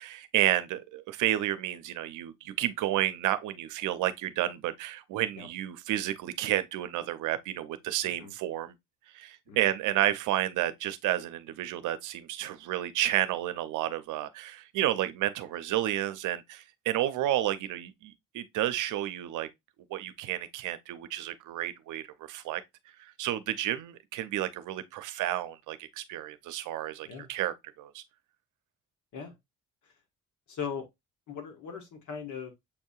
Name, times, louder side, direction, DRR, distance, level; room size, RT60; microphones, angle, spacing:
voice 1, 0.0-8.7 9.1-19.5 19.9-22.6 23.0-28.0, right 13 dB, 85° right, 0.6 m, -31 dB
voice 2, 30.5-30.8 31.3-32.5, left 6 dB, 75° left, 1.4 m, -39 dB
6.9 x 2.7 x 2.3 m
cardioid pair, 90°, 30 cm